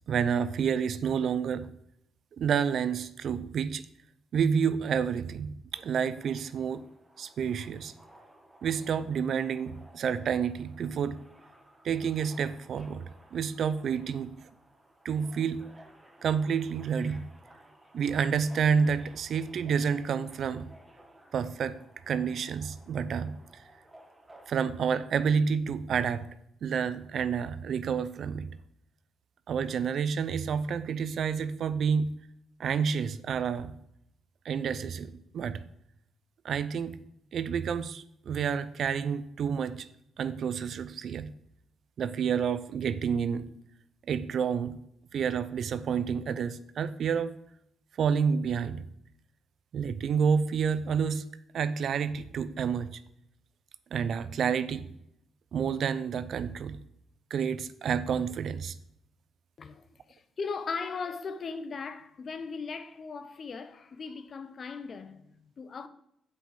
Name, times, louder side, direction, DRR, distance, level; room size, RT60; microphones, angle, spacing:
voice 1, 0.1-1.7 2.4-3.8 4.3-6.9 7.2-7.9 8.6-11.2 11.8-14.4 15.0-15.6 16.2-17.2 17.9-20.7 21.3-23.4 24.5-26.3 26.6-28.5 29.5-32.1 32.6-33.7 34.4-35.6 36.4-37.0 37.3-39.9 40.2-41.3 42.0-43.5 44.1-44.8 45.1-47.3 48.0-48.8 49.7-51.3 51.5-53.0 53.9-54.9 55.5-56.8 57.3-58.8, right 7 dB, 60° right, 0.5 m, -29 dB
Subway metro underground, 5.7-24.7, right 1 dB, 10° right, 1.4 m, -56 dB
voice 2, 59.6-65.9, left 5 dB, 45° left, 0.7 m, -38 dB
7.8 x 6.2 x 4.9 m
cardioid pair, 90°, 0 cm